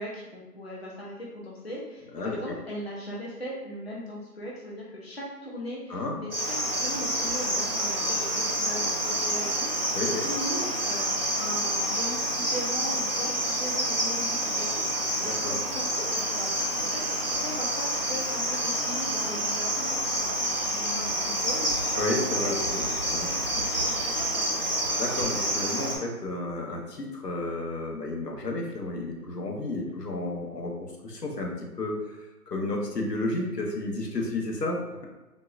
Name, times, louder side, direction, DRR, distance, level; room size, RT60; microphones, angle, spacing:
voice 1, 0.0-6.3 6.6-9.9 10.2-17.0 17.3-22.2 22.4-22.6 23.5-24.5, left 1 dB, 45° left, -5 dB, 0.4 m, -39 dB
Cricket, 6.3-26.0, right 1 dB, 40° right, 0.4 m, -28 dB
voice 2, 9.9-10.3 15.2-15.5 21.9-22.8 23.1-23.3 25.0-32.2 32.5-35.0, left 2 dB, 85° left, 0 dB, 0.9 m, -32 dB
3.6 x 2.0 x 2.4 m, 1.1 s
figure-of-eight pair, 165°, 47 cm